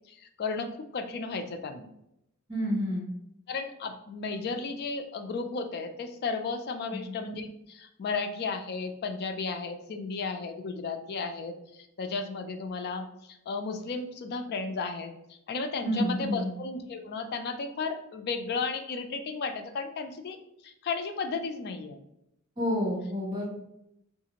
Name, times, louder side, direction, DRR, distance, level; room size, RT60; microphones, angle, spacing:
voice 1, 0.1-1.9 3.5-20.4 20.6-22.0, left 4 dB, 45° left, 7 dB, 0.3 m, -34 dB
voice 2, 2.5-3.1 6.9-7.1 15.8-16.5 22.6-23.4, equal, 20° right, -6 dB, 1.2 m, -29 dB
3.7 x 2.4 x 2.9 m, 0.81 s
head